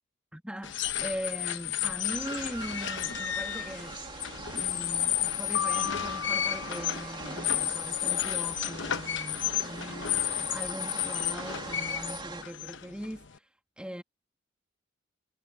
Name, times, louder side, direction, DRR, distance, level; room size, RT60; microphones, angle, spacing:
voice 1, 0.3-4.0 4.3-13.3 13.8-14.0, equal, 5° right, 2.4 m, -40 dB
sound 1, 0.6-13.4, left 11 dB, 65° left, 0.9 m, -32 dB
sound 2, 2.1-12.4, right 3 dB, 25° right, 2.6 m, -42 dB
Piano, 5.6-7.7, left 8 dB, 90° left, 0.3 m, -36 dB
head